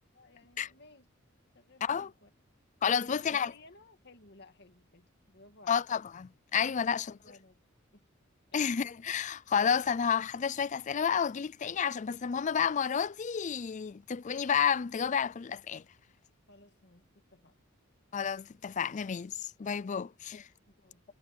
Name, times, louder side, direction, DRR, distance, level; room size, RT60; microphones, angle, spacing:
voice 1, 0.1-1.1 1.5-2.3 3.0-5.8 6.8-7.6 7.9-8.0 8.5-8.8 16.5-17.6 20.0-20.1 20.7-21.0, left 2 dB, 55° left, 2.1 m, -58 dB
voice 2, 2.8-3.5 5.7-7.1 8.5-15.8 18.1-20.5, left 7 dB, 35° left, 0.4 m, -30 dB
head